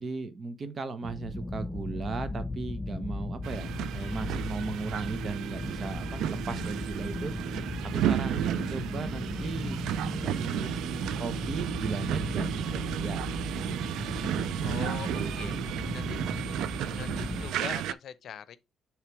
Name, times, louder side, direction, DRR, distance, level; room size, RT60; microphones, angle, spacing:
voice 1, 0.0-7.3 7.8-9.8 10.2-13.4 15.1-16.0, right 4 dB, 45° right, 1.1 m, -37 dB
sound 1, 1.0-17.5, left 2 dB, 15° left, 0.7 m, -37 dB
sound 2, 3.4-17.9, right 11 dB, 85° right, 0.4 m, -33 dB
voice 2, 14.6-15.6 15.9-16.2 16.9-18.6, left 8 dB, 65° left, 0.7 m, -42 dB
6.7 x 3.3 x 4.8 m
cardioid pair, 90°, 0 cm